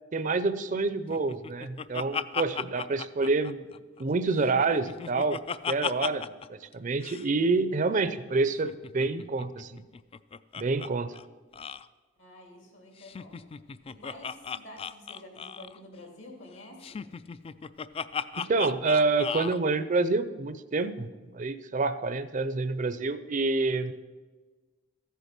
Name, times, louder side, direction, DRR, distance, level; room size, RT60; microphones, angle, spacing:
voice 1, 0.1-3.6 4.0-5.4 5.7-9.8 10.6-11.1 18.4-23.9, right 3 dB, 40° right, 13 dB, 0.5 m, -27 dB
Laughter, 1.1-4.0 4.4-6.5 6.7-6.8 7.0-7.3 8.5-10.9 11.1-11.3 11.5-11.9 13.0-15.8 16.8-19.6, left 6 dB, 30° left, 0.3 m, -36 dB
voice 2, 12.2-13.4 13.9-17.0, left 1 dB, 75° left, 1 dB, 3.1 m, -49 dB
14.5 x 8.2 x 6.0 m, 1.3 s
head